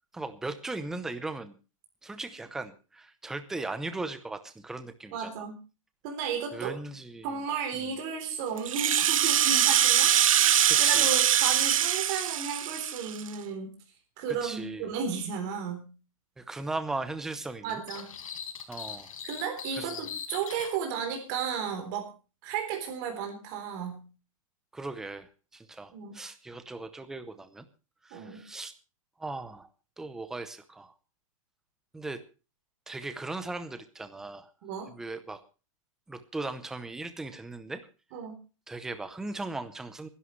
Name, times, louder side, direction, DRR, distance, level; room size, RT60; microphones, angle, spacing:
voice 1, 0.1-1.6 2.0-5.4 6.5-7.4 7.7-7.9 10.4-11.1 14.3-15.0 16.4-17.8 18.7-19.1 19.8-19.9 24.7-27.7 28.0-28.7 29.2-29.7 30.0-30.9 31.9-32.2 32.9-34.5 34.9-35.4 36.1-37.9 38.7-40.1, right 2 dB, 5° right, 11 dB, 0.7 m, -38 dB
voice 2, 5.1-5.6 6.0-6.7 7.2-10.4 10.7-13.7 14.2-15.9 17.6-18.2 19.2-22.1 22.4-24.0 25.9-26.1 28.1-28.4 34.6-34.9 38.1-38.4, right 6 dB, 30° right, 3 dB, 3.8 m, -34 dB
Rattle (instrument), 8.6-13.3, right 10 dB, 75° right, 1.0 m, -23 dB
sound 1, 17.9-20.8, left 7 dB, 75° left, 4.3 m, -41 dB
26.5 x 11.0 x 3.2 m, 0.34 s
supercardioid pair, 175°, 18 cm